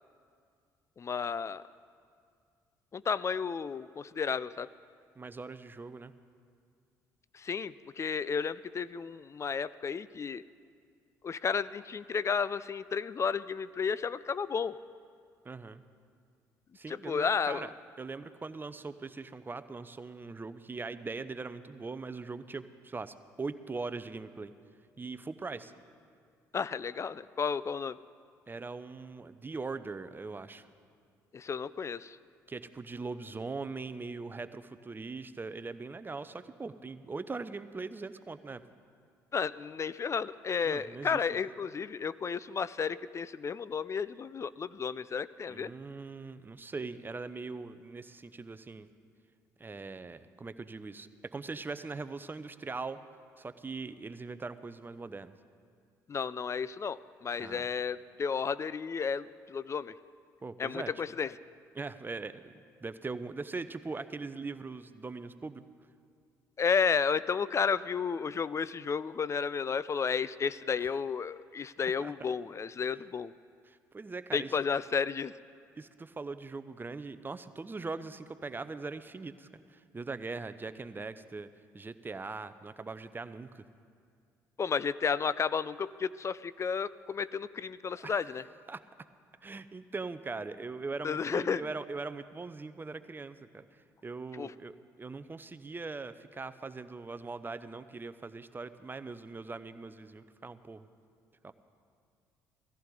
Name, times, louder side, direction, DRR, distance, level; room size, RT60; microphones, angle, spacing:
voice 1, 1.0-1.6 2.9-4.7 7.3-10.4 11.2-14.8 16.9-17.7 26.5-28.0 31.3-32.2 39.3-45.7 56.1-59.9 60.6-61.3 66.6-73.3 74.3-75.3 84.6-88.4 91.0-91.6 94.3-94.5, left 6 dB, 35° left, 17 dB, 0.4 m, -32 dB
voice 2, 5.2-6.1 15.4-15.8 16.7-24.5 25.0-25.7 28.5-30.7 32.5-38.6 40.6-41.2 45.5-48.9 49.6-53.0 53.4-55.3 57.4-57.7 60.4-61.0 61.7-62.5 62.8-65.6 70.8-70.9 72.0-72.1 73.7-74.6 75.7-81.5 81.7-83.7 88.0-88.4 88.7-88.8 89.4-100.9 101.4-101.5, right 3 dB, 25° right, 12 dB, 0.7 m, -41 dB
17.0 x 14.5 x 3.9 m, 2.2 s
hypercardioid pair, 55°, 9 cm